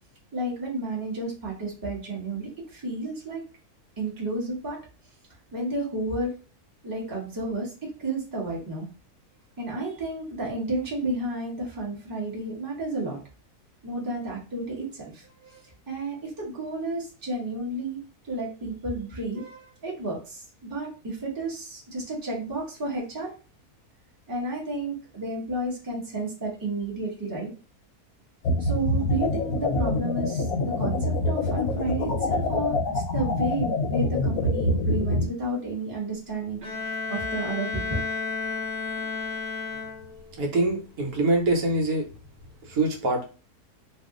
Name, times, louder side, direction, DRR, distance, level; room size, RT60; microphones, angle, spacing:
voice 1, 0.3-3.4 4.0-4.8 5.5-6.3 6.8-8.9 9.6-13.2 13.8-23.3 24.3-27.5 28.6-36.6 37.1-38.0 39.0-39.1, right 2 dB, 15° right, -4 dB, 0.9 m, -32 dB
sound 1, 28.4-35.3, left 2 dB, 75° left, 1.0 m, -26 dB
Bowed string instrument, 36.6-40.4, left 4 dB, 55° right, 1.0 m, -32 dB
voice 2, 40.3-42.0 42.6-43.2, right 2 dB, 75° right, 2 dB, 1.2 m, -24 dB
2.7 x 2.4 x 3.6 m, 0.35 s
omnidirectional pair, 1.6 m